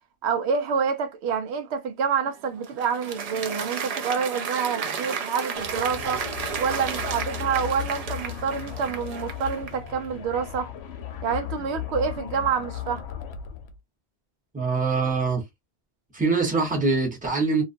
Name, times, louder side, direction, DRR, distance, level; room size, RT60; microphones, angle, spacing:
voice 1, 0.2-10.7 11.2-13.0, right 6 dB, 75° right, 0.8 m, -27 dB
Applause, 2.3-9.9, right 6 dB, 55° right, 0.4 m, -33 dB
sound 1, 5.5-13.8, left 10 dB, 75° left, 0.8 m, -36 dB
voice 2, 14.5-15.4 16.1-17.6, right 4 dB, 10° right, 0.8 m, -23 dB
2.4 x 2.3 x 2.5 m
omnidirectional pair, 1.1 m